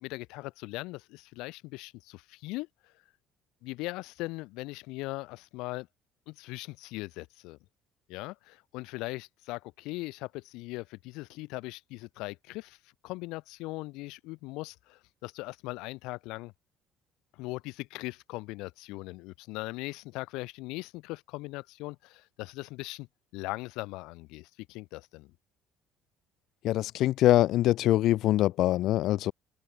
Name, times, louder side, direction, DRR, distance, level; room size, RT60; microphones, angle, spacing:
voice 1, 0.0-2.7 3.6-5.9 6.3-7.6 8.1-12.8 13.0-16.5 17.3-23.1 23.3-25.3, left 22 dB, 85° left, 0.8 m, -39 dB
voice 2, 26.6-29.3, left 14 dB, 55° left, 0.4 m, -24 dB
open air
cardioid pair, 180°, 0 cm